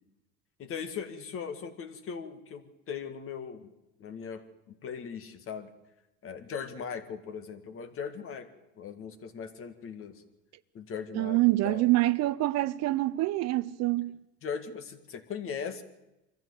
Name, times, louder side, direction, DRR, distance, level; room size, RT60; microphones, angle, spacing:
voice 1, 0.6-3.7 4.0-5.7 6.2-8.5 8.8-10.2 10.7-11.9 14.4-15.8, left 6 dB, 40° left, 2.0 m, -39 dB
voice 2, 11.1-14.2, right 17 dB, 55° right, 0.7 m, -26 dB
23.5 x 14.0 x 8.0 m
supercardioid pair, 125°, 32 cm